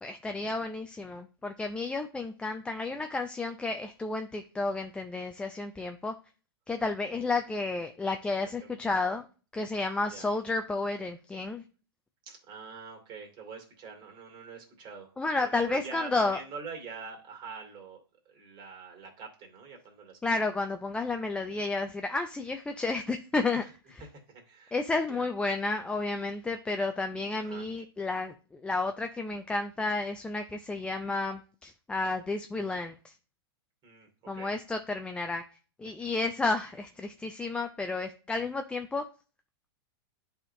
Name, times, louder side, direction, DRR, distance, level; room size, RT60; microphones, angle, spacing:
voice 1, 0.0-6.1 6.7-9.3 9.5-11.6 15.2-16.4 20.2-24.0 24.7-33.1 34.3-35.4 35.8-39.0, left 3 dB, 10° left, 6 dB, 0.4 m, -31 dB
voice 2, 8.4-8.8 10.1-10.3 12.3-15.1 15.4-18.0 18.3-20.2 23.5-23.7 24.1-24.8 25.1-25.3 27.4-27.7 33.8-34.5, right 5 dB, 35° right, 2 dB, 2.4 m, -45 dB
10.5 x 3.5 x 2.7 m, 0.36 s
hypercardioid pair, 120°, 13 cm